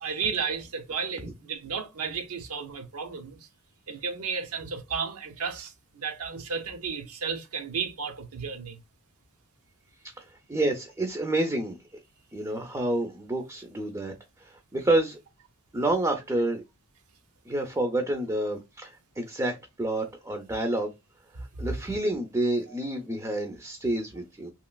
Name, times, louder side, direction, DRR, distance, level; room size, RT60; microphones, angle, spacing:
voice 1, 0.0-3.4 3.9-8.8 21.5-21.8, right 5 dB, 85° right, 0.7 m, -33 dB
voice 2, 10.2-11.8 12.3-14.1 14.4-15.2 15.7-16.6 17.5-20.9 21.6-24.5, right 1 dB, 15° right, 0.4 m, -29 dB
3.0 x 2.8 x 2.2 m
head